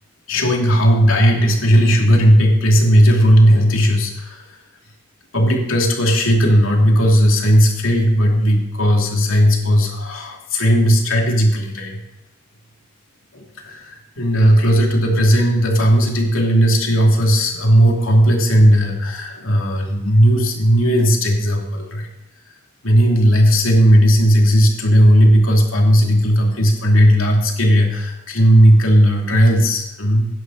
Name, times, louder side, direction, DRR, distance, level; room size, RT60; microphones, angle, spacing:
voice 1, 0.3-4.4 5.3-12.0 13.3-22.1 22.8-30.3, equal, 85° left, 1 dB, 2.7 m, -15 dB
16.5 x 11.0 x 4.1 m, 0.93 s
head